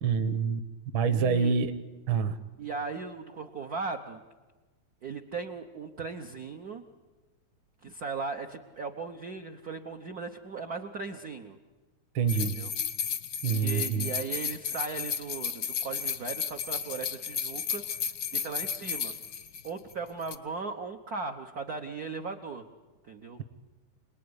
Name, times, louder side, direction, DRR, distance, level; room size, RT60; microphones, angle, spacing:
voice 1, 0.0-0.6 0.9-1.7 2.1-2.4 12.1-12.6 13.4-14.1, right 6 dB, 60° right, 11 dB, 1.5 m, -26 dB
voice 2, 1.1-1.5 2.6-4.2 5.0-6.8 7.8-11.6 12.4-12.7 13.5-17.8 18.3-19.1 19.6-22.6 23.0-23.4, right 4 dB, 90° right, 4 dB, 0.8 m, -37 dB
sound 1, 12.3-19.9 20.2-20.4, left 7 dB, 70° left, 1.0 m, -33 dB
27.0 x 20.0 x 9.7 m, 1.2 s
omnidirectional pair, 3.3 m